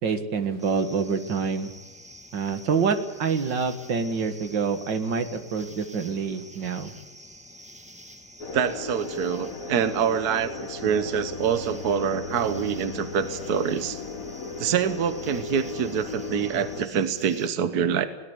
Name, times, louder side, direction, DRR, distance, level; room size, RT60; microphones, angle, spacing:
voice 1, 0.0-1.7 2.3-6.9, right 5 dB, 85° right, 9 dB, 2.3 m, -26 dB
sound 1, 0.6-17.5, equal, 5° right, 1.7 m, -48 dB
sound 2, 8.4-16.9, left 4 dB, 50° left, 1.7 m, -36 dB
voice 2, 8.5-14.0 14.6-18.1, right 7 dB, 60° right, 11 dB, 1.6 m, -26 dB
21.0 x 18.0 x 8.1 m, 1.2 s
omnidirectional pair, 1.9 m